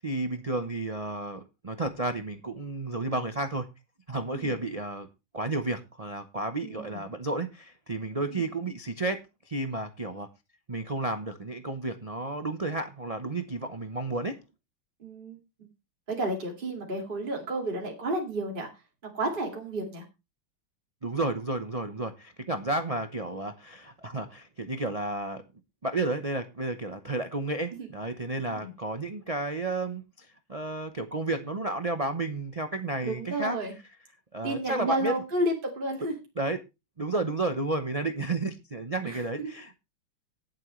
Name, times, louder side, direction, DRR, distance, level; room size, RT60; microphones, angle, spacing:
voice 1, 0.0-3.7 4.1-5.1 5.3-10.3 10.7-14.4 21.0-25.4 25.8-33.6 34.3-35.1 36.4-36.6 37.0-39.8, right 2 dB, 60° right, 0.3 m, -32 dB
voice 2, 6.6-7.0 8.3-8.5 15.0-15.4 16.2-18.7 19.0-20.0 27.8-27.9 28.4-28.7 33.0-33.7 34.4-36.1 39.0-39.5, right 1 dB, 25° right, 2.4 m, -31 dB
18.0 x 7.5 x 3.2 m
omnidirectional pair, 2.3 m